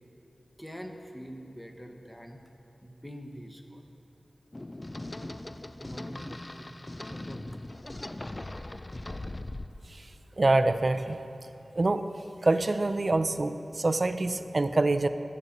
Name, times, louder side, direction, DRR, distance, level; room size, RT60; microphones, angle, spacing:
voice 1, 0.6-2.4 2.8-3.9 5.8-6.7 7.1-7.6, equal, 5° left, 4 dB, 1.1 m, -44 dB
sound 1, 4.5-9.7, left 1 dB, 35° left, 0.5 m, -39 dB
voice 2, 10.4-11.2 11.8-12.0 12.4-15.1, right 2 dB, 50° right, 11 dB, 0.5 m, -25 dB
12.5 x 5.4 x 8.5 m, 2.9 s
cardioid pair, 50°, 0 cm